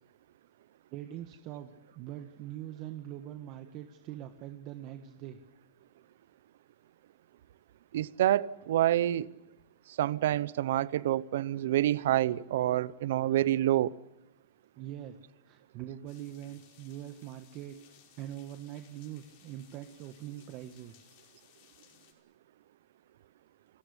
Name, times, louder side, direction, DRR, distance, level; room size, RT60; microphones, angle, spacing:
voice 1, 0.9-5.4 14.8-15.2 15.4-17.8 18.2-21.0, right 12 dB, 40° right, 1.5 m, -43 dB
voice 2, 7.9-9.3 10.0-13.9, right 13 dB, 70° right, 0.8 m, -27 dB
sound 1, 16.1-22.1, left 10 dB, 50° left, 5.5 m, -62 dB
28.5 x 16.0 x 9.9 m
supercardioid pair, 150°, 0 cm